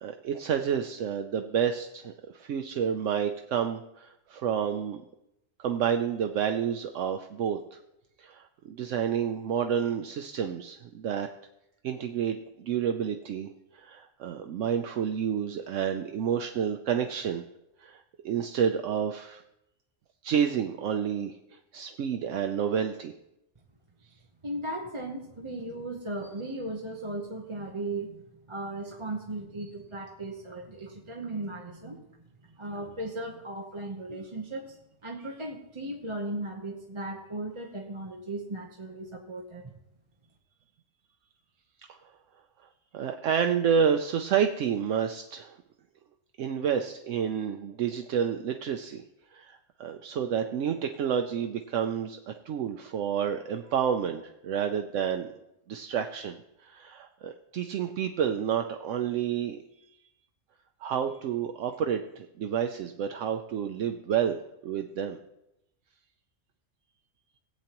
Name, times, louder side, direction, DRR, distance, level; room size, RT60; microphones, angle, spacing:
voice 1, 0.0-5.0 5.6-7.8 8.2-11.3 11.8-13.5 13.7-17.4 17.8-19.4 20.2-21.4 21.7-23.1 42.9-45.5 46.4-49.0 49.3-55.3 55.7-59.6 60.8-65.2, right 8 dB, 75° right, 6 dB, 1.0 m, -29 dB
voice 2, 24.4-28.2 28.5-32.0 32.6-34.8 35.0-39.7, right 2 dB, 25° right, -1 dB, 0.9 m, -37 dB
18.0 x 8.9 x 3.0 m, 0.87 s
omnidirectional pair, 1.3 m